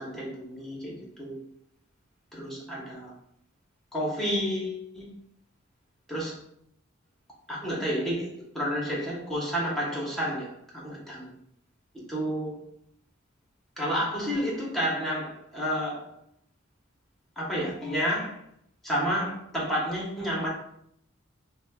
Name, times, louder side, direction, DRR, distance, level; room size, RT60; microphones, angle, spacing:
voice 1, 0.0-1.4 2.3-3.1 3.9-5.1 6.1-6.4 7.5-11.3 12.1-12.6 13.8-16.1 17.4-18.4 18.8-20.5, equal, ahead, -5 dB, 1.0 m, -30 dB
5.0 x 2.3 x 2.3 m, 0.70 s
head